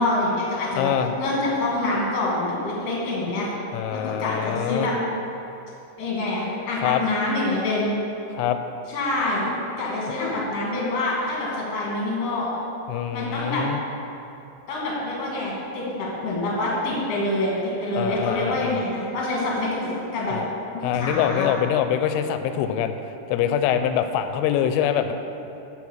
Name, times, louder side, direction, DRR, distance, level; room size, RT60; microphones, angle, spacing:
voice 1, 0.0-0.9 1.2-3.5 3.9-4.9 6.0-7.9 8.9-9.5 9.8-12.6 13.1-13.6 14.7-20.4 20.7-21.5, left 2 dB, 55° left, -5 dB, 1.7 m, -26 dB
voice 2, 0.8-1.1 3.7-4.9 6.8-7.0 8.3-8.6 12.9-13.8 18.0-18.8 20.3-20.5 20.8-23.0 23.3-25.1, left 9 dB, 85° left, 9 dB, 3.0 m, -24 dB
11.0 x 4.6 x 7.2 m, 2.9 s
omnidirectional pair, 5.9 m